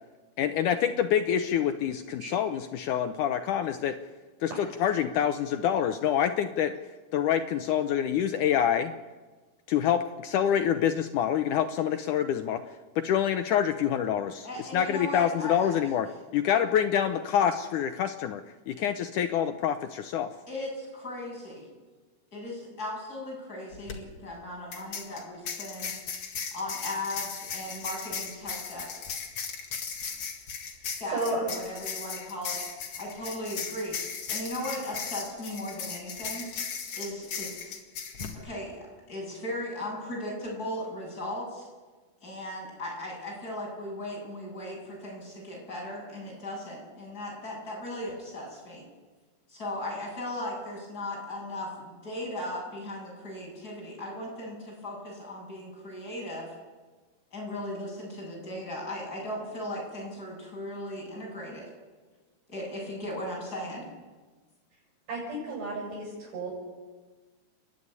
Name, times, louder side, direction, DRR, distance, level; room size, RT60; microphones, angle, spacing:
voice 1, 0.4-4.0 4.4-8.9 9.7-12.6 13.0-14.5 14.7-20.3, left 9 dB, 80° left, 8 dB, 1.8 m, -26 dB
voice 2, 14.4-15.7 20.5-21.7 22.3-25.9 26.5-29.0 30.8-32.6 32.9-34.0 34.3-36.5 36.9-37.7 38.4-41.7 42.2-48.9 49.5-56.5 57.3-61.7 62.5-63.9, left 1 dB, 20° left, -3 dB, 8.5 m, -37 dB
sound 1, 23.7-23.9 24.7-38.3, left 6 dB, 45° left, 2.7 m, -37 dB
voice 3, 65.1-66.5, right 2 dB, 70° right, -5 dB, 9.2 m, -33 dB
30.0 x 11.0 x 9.7 m, 1.3 s
omnidirectional pair, 4.5 m